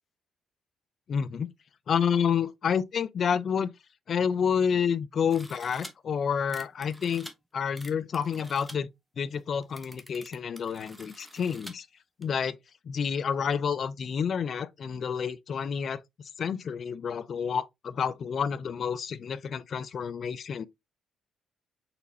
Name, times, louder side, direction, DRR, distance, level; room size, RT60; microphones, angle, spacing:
voice 1, 1.1-1.5 1.9-3.7 4.1-7.3 7.5-8.9 9.2-11.9 12.2-12.6 12.9-16.0 16.4-20.6, left 7 dB, 55° left, 0.4 m, -29 dB
sound 1, 5.3-5.9 6.5-7.3 7.8-8.7 9.3-9.4 9.6-11.7 12.2-12.3, equal, ahead, 0.9 m, -47 dB
4.2 x 4.0 x 2.7 m
cardioid pair, 90°, 0 cm